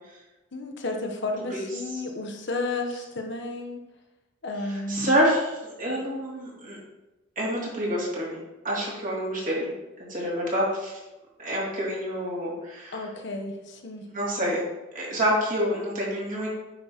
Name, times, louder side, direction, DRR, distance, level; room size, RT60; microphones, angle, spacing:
voice 1, 0.5-3.8 4.4-5.1 12.9-14.0, left 2 dB, 65° left, 3 dB, 1.0 m, -32 dB
voice 2, 4.7-6.8 7.4-8.4 8.6-9.7 10.1-10.9 11.4-13.0 14.1-14.6 14.9-16.5, equal, 45° right, -5 dB, 2.9 m, -27 dB
9.6 x 6.0 x 3.0 m, 1.0 s
head